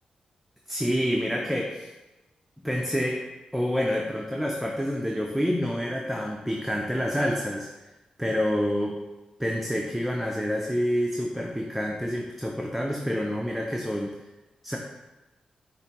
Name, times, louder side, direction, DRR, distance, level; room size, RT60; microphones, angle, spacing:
voice 1, 0.7-1.9 2.6-3.2 3.5-7.7 8.2-9.0 9.4-14.1 14.6-14.8, equal, ahead, 0 dB, 0.4 m, -27 dB
5.0 x 2.5 x 2.9 m, 1.1 s
cardioid pair, 55°, 3 cm